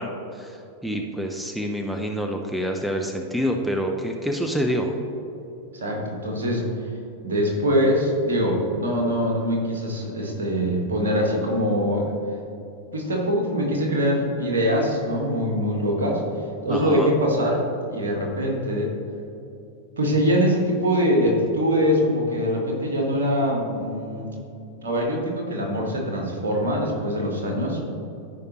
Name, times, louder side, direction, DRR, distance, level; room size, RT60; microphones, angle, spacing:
voice 1, 0.0-5.0 16.7-17.1, equal, 5° right, 3 dB, 0.6 m, -27 dB
voice 2, 5.7-6.6 7.2-12.1 12.9-16.2 16.6-17.7 17.9-18.9 20.0-24.3 24.8-27.8, equal, 65° right, 0 dB, 1.7 m, -23 dB
14.0 x 5.0 x 3.1 m, 2.8 s
figure-of-eight pair, 90°, 0 cm